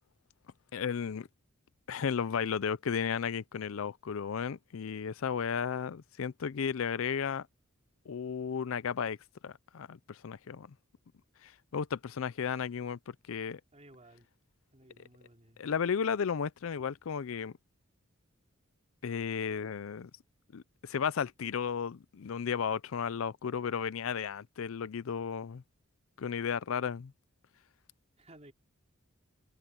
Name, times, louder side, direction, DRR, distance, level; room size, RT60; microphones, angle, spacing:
voice 1, 0.7-1.3 1.9-7.5 8.1-9.2 9.4-10.7 11.4-13.6 15.0-15.1 15.6-17.5 19.0-20.1 20.5-25.6 26.2-27.1, left 7 dB, 75° left, 0.5 m, -34 dB
voice 2, 13.7-14.3 14.7-15.6 28.2-28.5, right 1 dB, 30° right, 4.0 m, -56 dB
head